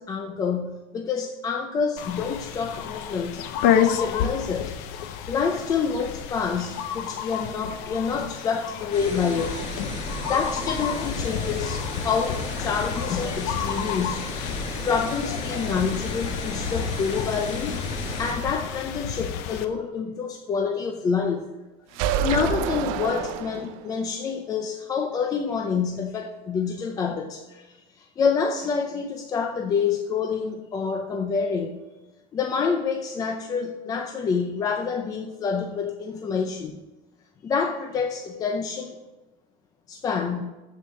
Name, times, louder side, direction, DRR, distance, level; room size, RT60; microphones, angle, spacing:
voice 1, 0.0-4.8 5.0-9.6 10.3-14.5 14.8-21.5 21.9-31.7 32.3-36.8 37.4-39.0 39.9-40.4, left 5 dB, 20° left, 4 dB, 0.5 m, -27 dB
sound 1, 2.0-19.7, left 9 dB, 65° left, 0.8 m, -30 dB
sound 2, 8.9-18.3, left 2 dB, 40° left, 2.3 m, -33 dB
sound 3, 21.9-24.0, right 9 dB, 80° right, 0.8 m, -27 dB
7.6 x 7.4 x 6.0 m, 1.1 s
cardioid pair, 175°, 17 cm